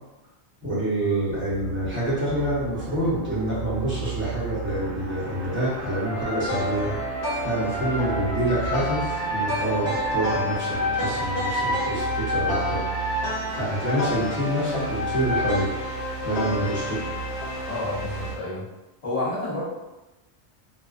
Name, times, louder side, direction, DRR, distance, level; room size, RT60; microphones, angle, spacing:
voice 1, 0.6-6.9 7.4-12.8 13.5-15.7 16.2-17.1, right 1 dB, 10° right, -10 dB, 0.8 m, -27 dB
sound 1, 1.3-18.3, right 6 dB, 50° right, 0.7 m, -35 dB
sound 2, 6.0-18.4, left 1 dB, 80° left, 0.9 m, -29 dB
voice 2, 17.7-18.6 19.0-19.6, left 2 dB, 40° left, -7 dB, 0.8 m, -29 dB
2.4 x 2.2 x 2.4 m, 1.0 s
omnidirectional pair, 1.1 m